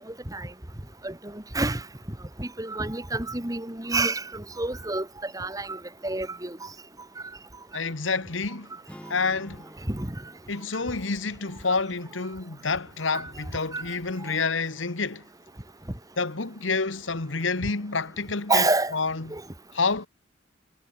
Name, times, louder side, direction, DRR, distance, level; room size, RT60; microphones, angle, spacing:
voice 1, 1.0-1.8 2.4-6.6 9.9-10.1 13.1-13.2 13.7-13.8 18.5-18.9 19.3-19.4, right 2 dB, 20° right, 1.7 m, -28 dB
voice 2, 7.7-8.7 9.1-9.6 10.5-15.2 16.2-19.3 19.7-20.1, left 4 dB, 85° left, 1.6 m, -28 dB
sound 1, 8.9-13.0, equal, 5° left, 3.6 m, -51 dB
head